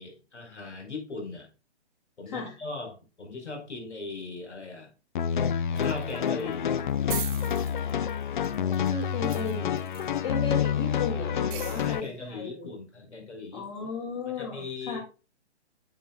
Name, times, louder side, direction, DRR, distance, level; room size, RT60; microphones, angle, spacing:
voice 1, 0.0-1.5 2.2-4.9 5.7-6.9 11.8-13.7 14.4-15.0, left 3 dB, 80° left, 4.5 m, -39 dB
sound 1, 5.2-12.0, left 8 dB, 45° left, 0.5 m, -28 dB
sound 2, 5.8-6.5 6.8-6.9 7.1-10.2 11.5-12.1, right 11 dB, 20° right, 1.2 m, -39 dB
voice 2, 8.5-9.9 10.2-12.7 13.5-15.0, left 4 dB, 30° left, 2.1 m, -35 dB
8.7 x 7.5 x 2.3 m
hypercardioid pair, 150°, 34 cm